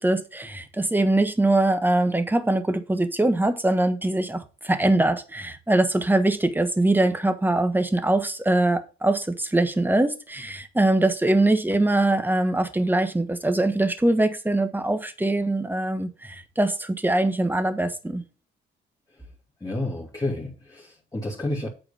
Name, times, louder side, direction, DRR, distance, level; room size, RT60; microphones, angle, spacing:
voice 1, 0.0-18.2, right 2 dB, 10° right, 1.4 m, -22 dB
voice 2, 19.6-21.7, left 1 dB, 15° left, 3.1 m, -30 dB
8.7 x 4.9 x 7.0 m
cardioid pair, 90°, 20 cm